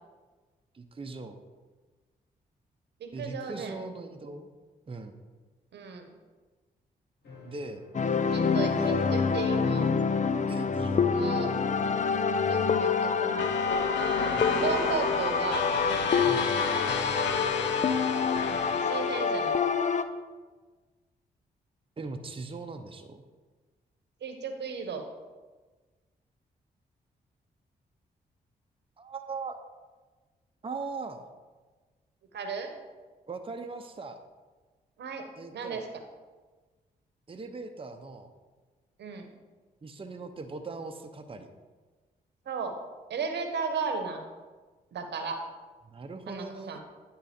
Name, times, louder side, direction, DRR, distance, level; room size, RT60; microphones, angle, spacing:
voice 1, 0.7-1.4 3.1-4.5 4.9-5.2 7.4-7.8 8.7-9.1 10.5-11.2 14.3-14.6 16.2-16.5 22.0-23.2 29.0-29.6 30.6-31.3 33.3-34.2 35.4-35.8 37.3-38.3 39.8-41.5 45.8-46.8, right 3 dB, 30° right, 5 dB, 0.7 m, -39 dB
voice 2, 3.0-3.8 5.7-6.1 8.2-9.9 11.1-11.5 12.5-13.5 14.5-15.7 18.3-19.6 24.2-25.0 32.3-32.7 35.0-35.2 35.5-35.9 39.0-39.3 42.5-42.7 43.1-44.2 44.9-45.4 46.3-46.8, right 5 dB, 70° right, 6 dB, 0.9 m, -34 dB
sound 1, 7.2-15.6, left 4 dB, 70° left, 1.8 m, -55 dB
sound 2, 7.9-20.0, left 5 dB, 40° left, 0.5 m, -27 dB
sound 3, 13.4-19.6, left 5 dB, 85° left, 0.6 m, -33 dB
9.6 x 3.8 x 4.3 m, 1.3 s
supercardioid pair, 50°, 18 cm